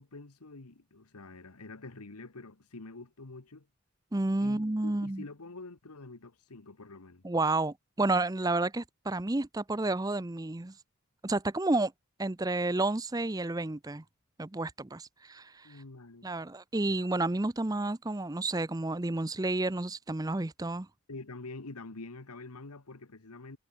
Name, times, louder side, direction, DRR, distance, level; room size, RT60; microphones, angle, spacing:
voice 1, 0.0-3.7 4.4-7.2 15.6-16.3 21.1-23.6, left 3 dB, 90° left, 1.5 m, -46 dB
voice 2, 4.1-5.2 7.2-10.7 11.2-11.9 12.2-14.0 14.4-15.7 16.2-20.9, right 2 dB, 15° right, 0.6 m, -30 dB
head